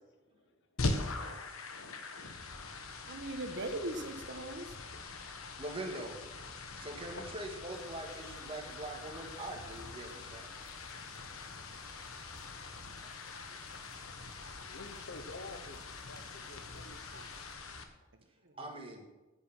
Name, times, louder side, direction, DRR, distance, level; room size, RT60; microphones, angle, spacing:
sound 1, 0.8-17.8, left 3 dB, 90° left, 1.3 m, -43 dB
voice 1, 3.1-4.8 12.7-13.1 14.3-14.4 18.4-18.7, right 1 dB, 60° right, 1.3 m, -40 dB
voice 2, 4.8-5.7 6.4-7.5 9.5-10.3 10.5-17.5 18.5-18.6, left 3 dB, 55° left, 0.9 m, -55 dB
voice 3, 5.6-6.2 6.8-10.5 18.6-19.1, right 1 dB, 25° right, 1.9 m, -42 dB
Boiling, 7.7-17.5, left 3 dB, 20° left, 1.0 m, -60 dB
9.8 x 9.4 x 6.1 m
head